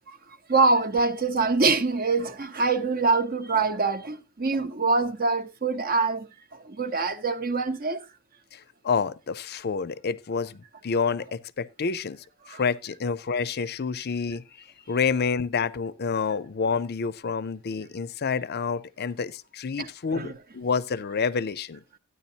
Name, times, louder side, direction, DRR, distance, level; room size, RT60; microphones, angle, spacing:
voice 1, 0.5-8.1 12.5-12.6 19.8-19.9 20.1-20.3, right 3 dB, 45° right, 0.9 m, -25 dB
voice 2, 8.5-14.4 14.9-21.8, left 5 dB, 50° left, 0.5 m, -28 dB
13.5 x 9.6 x 2.8 m
head